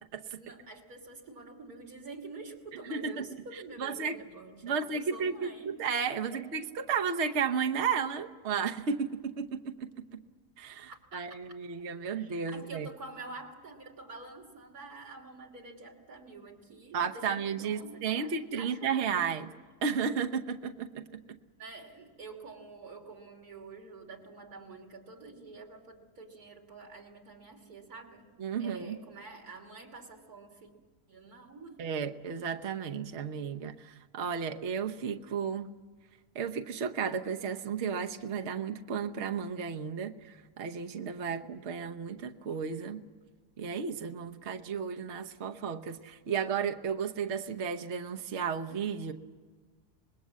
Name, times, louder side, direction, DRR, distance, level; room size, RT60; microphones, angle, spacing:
voice 1, 0.3-5.8 6.3-6.4 10.9-11.4 11.9-19.3 21.6-28.3 28.6-30.7 31.1-31.8, right 3 dB, 65° right, 1 dB, 3.3 m, -47 dB
voice 2, 2.9-3.3 3.8-4.2 4.6-10.2 10.6-12.9 16.9-19.5 19.8-21.2 28.4-29.0 31.8-35.7 36.3-43.0 43.6-49.1, right 6 dB, 50° right, 5 dB, 1.2 m, -33 dB
25.5 x 20.0 x 7.5 m, 1.5 s
omnidirectional pair, 1.7 m